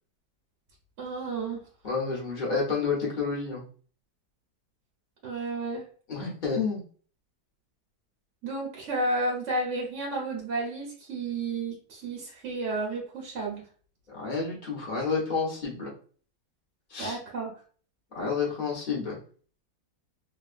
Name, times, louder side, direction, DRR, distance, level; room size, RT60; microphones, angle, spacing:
voice 1, 1.0-1.6 5.2-5.8 8.4-13.6 17.0-17.5, right 2 dB, 50° right, -3 dB, 0.9 m, -32 dB
voice 2, 1.8-3.6 6.1-6.8 14.1-15.9 16.9-17.2 18.1-19.2, left 5 dB, 40° left, -3 dB, 0.7 m, -30 dB
3.2 x 2.3 x 2.5 m, 0.43 s
omnidirectional pair, 2.2 m